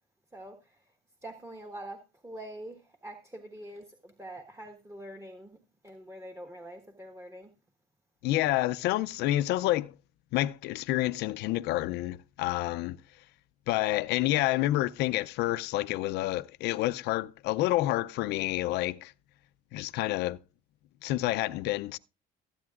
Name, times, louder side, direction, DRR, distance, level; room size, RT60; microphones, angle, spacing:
voice 1, 0.3-0.7 1.2-5.6 5.8-7.5, right 1 dB, 15° right, 1.4 m, -45 dB
voice 2, 8.2-9.9 10.3-13.0 13.7-19.1 19.7-20.4 21.0-22.0, left 16 dB, 85° left, 0.5 m, -28 dB
23.0 x 8.6 x 2.4 m
cardioid pair, 110°, 17 cm